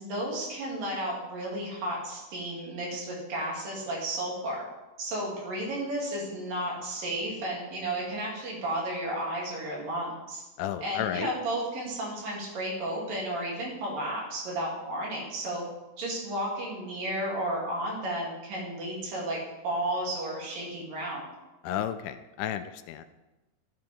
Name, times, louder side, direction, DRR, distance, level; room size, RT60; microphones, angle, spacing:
voice 1, 0.0-4.6 5.0-10.4 10.8-15.6 16.0-21.3, right 1 dB, 80° right, -3 dB, 4.1 m, -33 dB
voice 2, 10.6-11.3 21.6-23.0, left 10 dB, 80° left, 10 dB, 1.9 m, -32 dB
13.0 x 7.8 x 3.6 m, 1.1 s
omnidirectional pair, 3.9 m